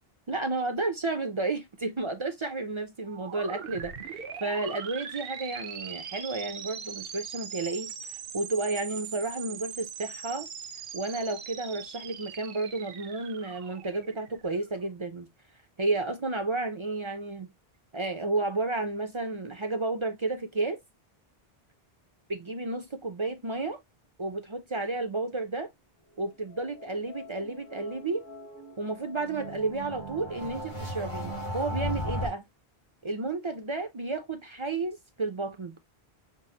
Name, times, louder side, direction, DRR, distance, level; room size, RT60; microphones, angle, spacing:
voice 1, 0.3-10.5 10.9-15.3 15.8-17.5 17.9-20.8 22.3-23.8 24.2-25.7 26.2-28.2 28.8-32.4 33.0-35.7, right 3 dB, 40° right, 0.5 m, -32 dB
sound 1, 3.1-14.7, right 7 dB, 70° right, 0.8 m, -41 dB
sound 2, 26.1-32.3, equal, 80° left, 2.7 m, -37 dB
6.0 x 2.0 x 2.7 m
omnidirectional pair, 1.0 m